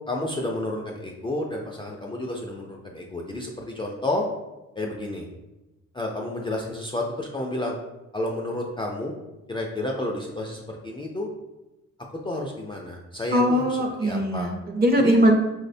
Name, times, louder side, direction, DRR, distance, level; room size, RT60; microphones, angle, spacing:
voice 1, 0.1-4.2 4.8-5.3 5.9-7.8 8.1-9.1 9.5-11.3 12.2-14.5 15.0-15.2, left 1 dB, 15° left, 0 dB, 0.3 m, -30 dB
voice 2, 13.3-15.3, equal, 30° right, 3 dB, 0.5 m, -21 dB
4.7 x 2.1 x 2.5 m, 1.0 s
cardioid pair, 90°, 30 cm